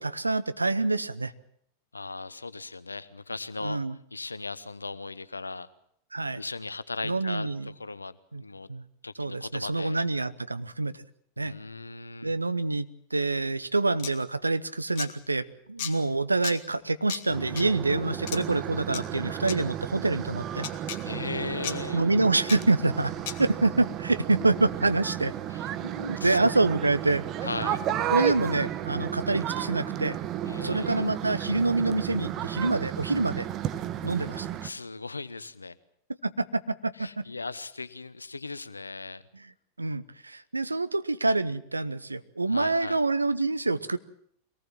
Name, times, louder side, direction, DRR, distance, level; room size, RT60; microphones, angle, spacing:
voice 1, 0.0-1.3 3.6-4.0 6.1-6.4 7.0-7.7 8.3-8.4 8.7-8.8 9.2-11.0 11.4-11.6 12.2-20.7 21.9-23.1 23.4-25.3 25.8-27.2 28.1-30.2 30.6-33.5 34.0-34.5 36.2-37.3 39.8-44.0, right 3 dB, 80° right, 14 dB, 0.9 m, -26 dB
voice 2, 1.9-3.8 4.1-5.7 6.4-8.7 9.0-10.0 11.4-12.3 21.0-22.1 25.5-25.7 26.2-26.4 27.4-27.8 30.4-31.1 34.6-35.8 37.0-39.2 42.5-43.0, left 3 dB, 80° left, 17 dB, 0.9 m, -37 dB
sound 1, 14.0-14.1 14.9-15.1 15.8-15.9 16.4-16.6 17.1-17.2 17.6-17.7 18.3-18.4 18.9-19.0 19.5-19.6 20.6-21.0 21.6-21.8 22.5-22.6 23.3-23.4, left 9 dB, 50° left, 2.0 m, -34 dB
sound 2, 17.3-34.7, right 11 dB, 35° right, 1.3 m, -33 dB
24.0 x 18.5 x 7.5 m, 0.68 s
figure-of-eight pair, 90°, 0 cm